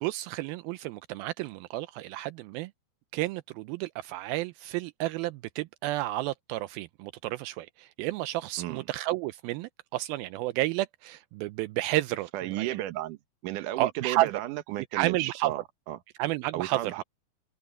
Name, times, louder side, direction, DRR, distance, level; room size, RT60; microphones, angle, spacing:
voice 1, 0.0-2.7 3.1-12.3 12.6-12.8 13.8-14.3 14.9-15.5 16.2-17.0, right 17 dB, 85° right, 2.4 m, -31 dB
voice 2, 12.3-16.0 16.5-17.0, right 15 dB, 65° right, 2.4 m, -34 dB
open air
omnidirectional pair, 4.3 m